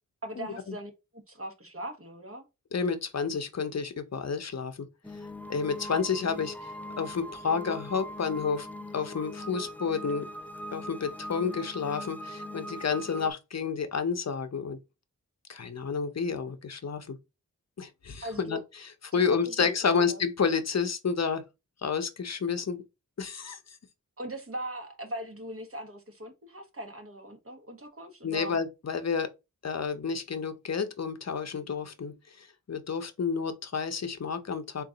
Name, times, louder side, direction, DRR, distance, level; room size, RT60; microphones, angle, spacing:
voice 1, 0.2-0.9 1.3-2.4 18.2-18.6 19.1-20.2 24.2-28.6, right 1 dB, 40° right, 1.1 m, -40 dB
voice 2, 2.7-4.9 5.5-8.7 8.9-10.3 10.7-14.8 15.5-17.2 17.8-21.4 21.8-22.8 23.2-23.6 28.2-29.3 29.6-34.8, left 5 dB, 50° left, 0.6 m, -30 dB
sound 1, 5.0-13.3, left 1 dB, 5° left, 0.3 m, -41 dB
3.8 x 2.5 x 3.8 m
wide cardioid pair, 65°, 33 cm